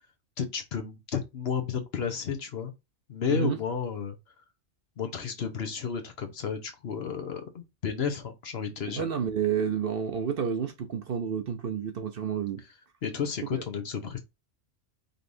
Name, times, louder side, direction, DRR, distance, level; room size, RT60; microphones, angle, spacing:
voice 1, 0.4-2.7 3.1-4.2 5.0-9.0 13.0-14.2, left 7 dB, 55° left, 1.1 m, -32 dB
voice 2, 8.9-12.6, right 7 dB, 55° right, 0.8 m, -30 dB
5.3 x 3.2 x 2.6 m
omnidirectional pair, 1.3 m